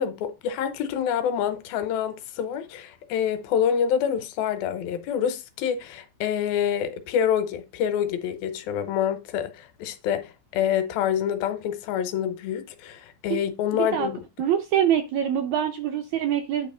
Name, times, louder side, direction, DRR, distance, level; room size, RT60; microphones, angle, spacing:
voice 1, 0.0-14.2, left 8 dB, 85° left, 2.7 m, -27 dB
voice 2, 13.7-14.1 14.4-16.7, right 9 dB, 80° right, 1.6 m, -24 dB
9.3 x 3.1 x 5.3 m
omnidirectional pair, 4.1 m